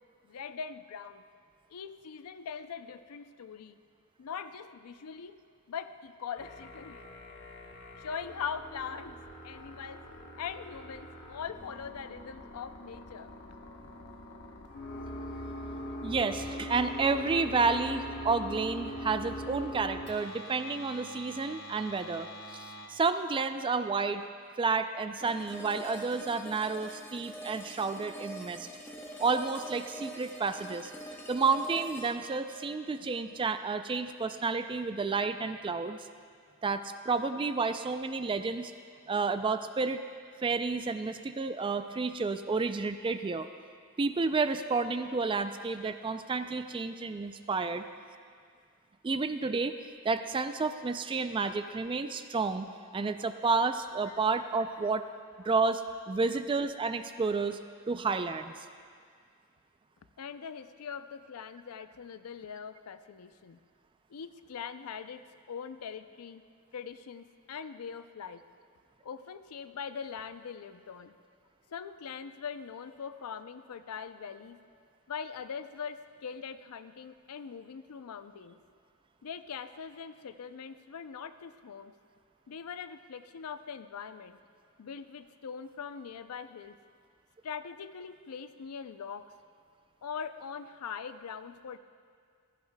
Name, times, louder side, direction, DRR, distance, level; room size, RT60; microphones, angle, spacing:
voice 1, 0.2-1.2 1.7-3.8 4.2-5.4 5.7-7.0 8.0-9.2 9.4-10.1 10.4-13.3 54.1-54.2 56.3-56.4 60.2-63.6 64.1-65.2 65.5-66.4 66.7-68.4 69.0-71.2 71.7-74.6 75.1-78.6 79.2-81.9 82.5-84.4 84.8-86.8 87.4-89.3 90.0-91.8, left 6 dB, 75° left, 12 dB, 0.5 m, -42 dB
sound 1, 6.4-22.9, equal, 50° left, 1.1 m, -43 dB
voice 2, 16.0-24.2 24.6-28.7 29.2-30.9 31.3-36.1 36.6-38.7 39.1-40.0 40.4-43.5 44.0-47.9 49.0-49.7 50.0-52.7 52.9-55.0 55.4-57.6 57.9-58.5, right 4 dB, 20° right, 10 dB, 0.3 m, -30 dB
sound 2, 25.2-34.2, right 1 dB, 10° left, 0.8 m, -45 dB
15.5 x 14.5 x 2.2 m, 2.1 s
head